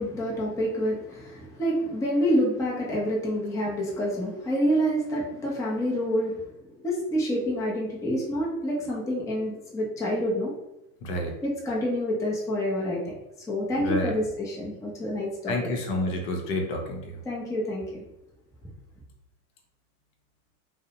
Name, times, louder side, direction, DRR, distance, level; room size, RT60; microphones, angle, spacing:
voice 1, 0.0-10.5 11.4-13.2 13.5-15.7 17.2-18.1, equal, 10° left, -4 dB, 0.5 m, -28 dB
voice 2, 11.0-11.3 13.8-14.1 15.5-17.2, left 2 dB, 60° left, 2 dB, 0.7 m, -29 dB
2.6 x 2.1 x 2.8 m, 0.86 s
supercardioid pair, 115°, 43 cm